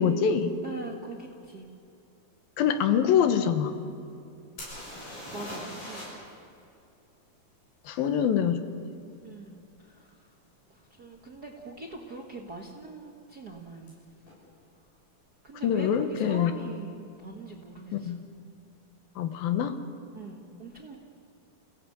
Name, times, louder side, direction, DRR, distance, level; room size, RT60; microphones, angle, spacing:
voice 1, 0.0-0.5 2.6-3.8 7.9-8.6 15.6-16.5 17.9-18.2 19.2-19.8, left 8 dB, 80° left, 9 dB, 2.9 m, -24 dB
voice 2, 0.6-1.7 5.3-6.2 9.2-10.3 10.7-13.9 15.4-18.1 20.1-21.0, right 3 dB, 45° right, 0 dB, 1.3 m, -42 dB
sound 1, 4.6-6.3 6.6-6.7 10.1-10.2 10.8-11.0 11.2-11.8 13.9-14.0 14.2-14.3, left 1 dB, 60° left, 9.2 m, -41 dB
29.5 x 17.0 x 8.6 m, 2.6 s
omnidirectional pair, 4.3 m